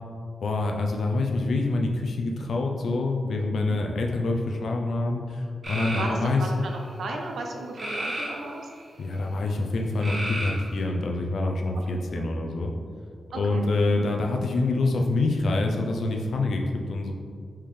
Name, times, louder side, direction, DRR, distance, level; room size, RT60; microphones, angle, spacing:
voice 1, 0.4-6.4 9.0-12.7 13.3-17.1, left 2 dB, 60° left, 2 dB, 0.4 m, -26 dB
sound 1, 5.6-6.1 7.8-8.8 10.0-10.8, right 1 dB, 35° right, 1.1 m, -32 dB
voice 2, 6.0-8.7 12.1-12.4 13.3-13.7 14.0-14.1, right 2 dB, 65° right, 2 dB, 0.5 m, -35 dB
4.3 x 3.7 x 3.2 m, 2.1 s
wide cardioid pair, 165°, 0 cm